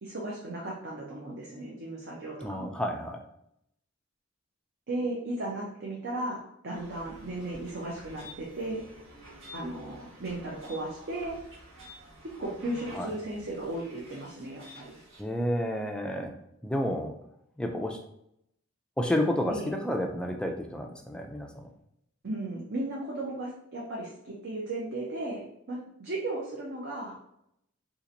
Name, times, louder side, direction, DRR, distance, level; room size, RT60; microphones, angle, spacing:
voice 1, 0.0-2.8 4.9-8.8 9.5-11.4 12.4-15.0 19.5-19.7 22.2-27.2, right 2 dB, 55° right, -3 dB, 0.6 m, -36 dB
voice 2, 2.4-3.3 12.9-13.1 15.2-16.3 16.6-17.2 17.6-18.0 19.0-21.7, left 1 dB, 5° left, 3 dB, 0.3 m, -30 dB
sound 1, 6.7-15.2, equal, 75° right, 1.2 m, -50 dB
2.8 x 2.5 x 3.8 m, 0.75 s
head